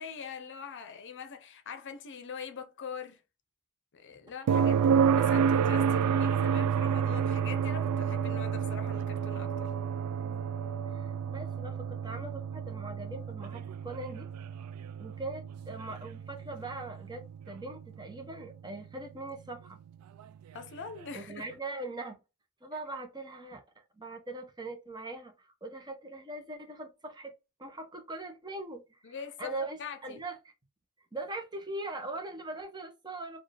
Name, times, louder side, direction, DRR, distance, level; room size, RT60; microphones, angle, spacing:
voice 1, 0.0-3.2 3.9-4.8 5.1-9.7 20.5-21.5 29.0-30.2, left 6 dB, 55° left, 0.7 m, -43 dB
voice 2, 4.5-5.0 10.2-10.5 10.9-14.3 15.0-19.8 21.1-22.2 22.6-27.3 27.6-29.8 30.0-30.4 31.1-33.4, right 2 dB, 20° right, 0.8 m, -41 dB
sound 1, 4.5-18.3 20.6-20.7, right 7 dB, 90° right, 0.3 m, -29 dB
4.5 x 2.4 x 3.3 m
head